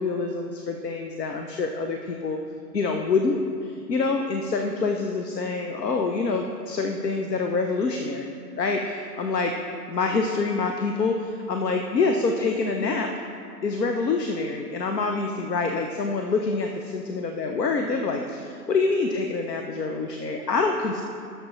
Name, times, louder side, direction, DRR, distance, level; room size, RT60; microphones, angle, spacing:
voice 1, 0.0-2.4 2.7-8.3 8.6-9.5 9.9-13.1 13.6-21.0, left 4 dB, 75° left, 4 dB, 0.8 m, -26 dB
13.0 x 6.8 x 3.1 m, 2.6 s
figure-of-eight pair, 130°, 49 cm